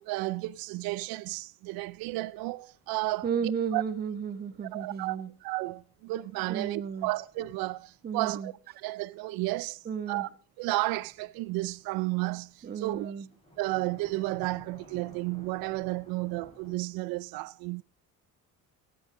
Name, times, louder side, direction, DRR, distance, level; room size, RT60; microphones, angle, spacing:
voice 1, 0.0-3.8 4.6-10.3 10.6-13.1 13.6-17.8, right 20 dB, 90° right, 0.6 m, -33 dB
sound 1, 1.8-8.2 10.9-16.7, left 1 dB, 20° left, 4.1 m, -56 dB
voice 2, 3.2-5.3 6.5-7.1 8.0-8.5 9.9-10.3 12.6-13.3, right 7 dB, 30° right, 1.0 m, -33 dB
17.0 x 9.5 x 3.8 m
cardioid pair, 145°, 35 cm